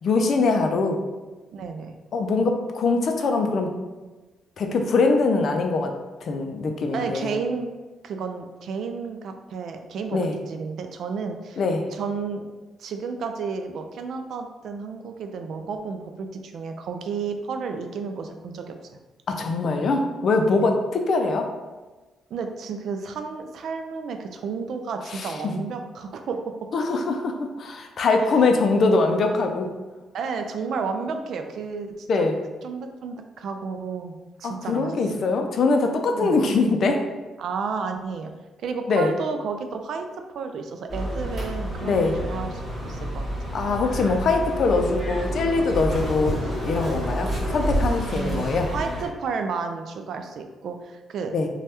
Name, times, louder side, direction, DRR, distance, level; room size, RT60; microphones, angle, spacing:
voice 1, 0.0-1.0 2.1-3.7 4.6-5.9 6.2-7.3 10.1-10.3 11.6-11.8 19.3-21.5 25.1-25.5 26.7-29.7 32.1-32.4 34.4-37.0 38.9-39.1 41.8-42.2 43.5-48.7 51.3-51.5, left 3 dB, 55° left, 4 dB, 0.4 m, -22 dB
voice 2, 1.5-2.0 6.9-7.7 8.0-10.2 10.5-11.6 11.9-12.4 12.8-18.7 20.5-20.7 22.3-26.5 28.2-28.4 30.1-32.3 32.6-35.1 36.1-36.4 37.4-38.3 38.6-40.1 40.3-43.2 48.0-51.3, right 5 dB, 65° right, 6 dB, 0.3 m, -32 dB
sound 1, 40.9-49.1, equal, 40° right, 1.5 m, -29 dB
3.2 x 2.2 x 2.8 m, 1.2 s
cardioid pair, 90°, 0 cm